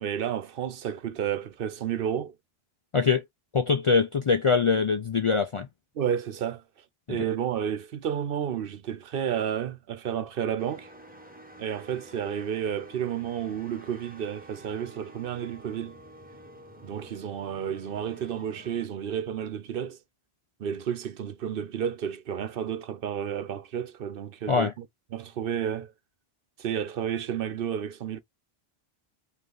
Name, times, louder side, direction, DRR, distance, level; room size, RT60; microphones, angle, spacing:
voice 1, 0.0-2.4 5.9-6.6 7.1-10.9 11.6-16.0 16.8-20.0 20.6-24.8 25.1-25.9 26.6-28.2, right 9 dB, 65° right, 0.8 m, -31 dB
voice 2, 2.9-3.2 3.5-5.7 7.1-7.3 24.5-24.7, left 5 dB, 45° left, 0.4 m, -23 dB
sound 1, 10.6-18.9, right 1 dB, 10° right, 1.0 m, -49 dB
5.4 x 2.6 x 3.8 m
omnidirectional pair, 1.0 m